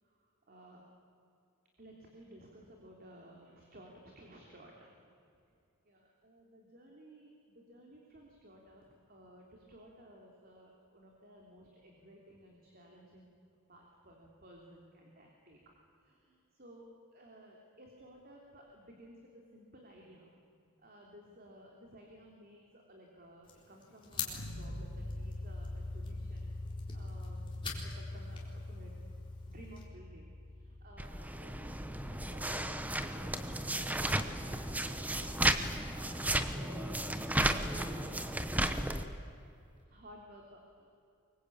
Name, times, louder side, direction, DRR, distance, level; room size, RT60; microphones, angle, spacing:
voice 1, 0.0-0.9 1.8-5.2 5.8-13.3 13.7-15.6 16.0-20.3 20.8-26.5 26.9-27.5 27.8-29.0 29.4-32.7 33.0-37.2 37.5-39.2 39.9-40.9, equal, 40° right, 0 dB, 3.2 m, -56 dB
sound 1, 23.4-29.9, left 5 dB, 20° left, 3.9 m, -46 dB
sound 2, 24.3-33.3, left 1 dB, 55° left, 2.8 m, -44 dB
sound 3, 31.0-39.0, right 1 dB, 5° right, 1.0 m, -34 dB
25.0 x 23.0 x 8.7 m, 2.6 s
head